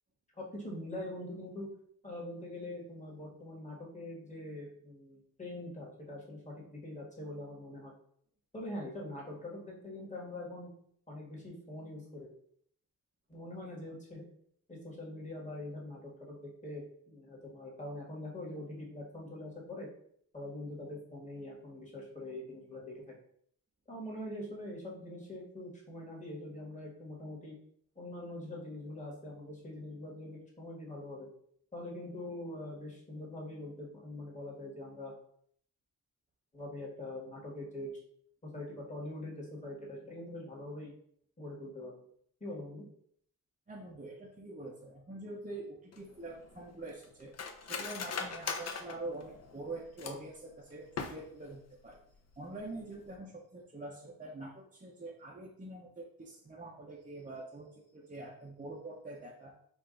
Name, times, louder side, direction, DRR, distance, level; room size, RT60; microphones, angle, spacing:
voice 1, 0.4-1.7 2.0-7.9 8.5-10.7 11.1-12.3 13.3-14.2 14.7-16.0 16.3-19.9 20.3-23.0 23.9-27.5 27.9-31.3 31.7-35.1 36.5-37.9 38.5-40.9 41.4-41.9 42.4-42.9, left 1 dB, 20° left, -3 dB, 1.5 m, -43 dB
voice 2, 43.7-47.3 47.6-52.0 52.3-59.5, right 2 dB, 20° right, -2 dB, 0.5 m, -45 dB
Cutlery silverware, 45.9-50.4 50.8-51.5 51.9-52.0 52.3-52.6 53.0-53.2, left 5 dB, 45° left, 0.6 m, -40 dB
4.6 x 2.4 x 3.8 m, 0.65 s
wide cardioid pair, 115°, 38 cm